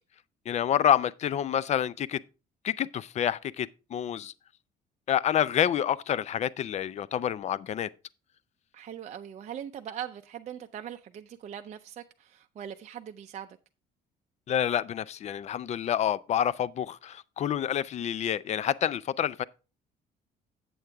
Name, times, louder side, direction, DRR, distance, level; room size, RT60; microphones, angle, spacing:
voice 1, 0.5-2.2 2.6-4.3 5.1-7.9 14.5-19.4, left 10 dB, 40° left, 0.4 m, -28 dB
voice 2, 8.7-13.6, right 9 dB, 45° right, 0.5 m, -41 dB
8.2 x 7.8 x 3.5 m
cardioid pair, 110°, 17 cm